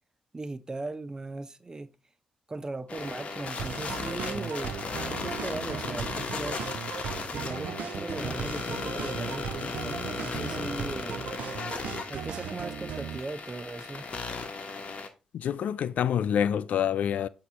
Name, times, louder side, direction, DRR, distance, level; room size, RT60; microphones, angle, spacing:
voice 1, 0.3-1.9 2.5-4.8 5.1-6.6 7.3-11.2 12.1-14.1, right 2 dB, 25° right, 0.6 m, -38 dB
sound 1, 2.9-15.1, left 4 dB, 50° left, 1.2 m, -36 dB
sound 2, 3.6-13.2, right 9 dB, 75° right, 0.5 m, -38 dB
voice 2, 15.3-17.3, left 9 dB, 70° left, 0.3 m, -27 dB
8.3 x 3.0 x 4.5 m
supercardioid pair, 65°, 3 cm